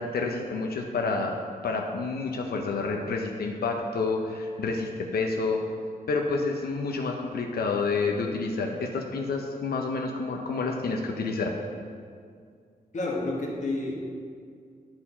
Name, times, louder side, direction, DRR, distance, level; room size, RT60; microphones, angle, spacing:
voice 1, 0.0-1.3 1.6-5.6 6.1-11.6, left 4 dB, 85° left, 2 dB, 0.7 m, -29 dB
voice 2, 12.9-13.9, left 2 dB, 50° left, -1 dB, 1.3 m, -29 dB
10.5 x 4.5 x 4.3 m, 2.1 s
wide cardioid pair, 105°, 16 cm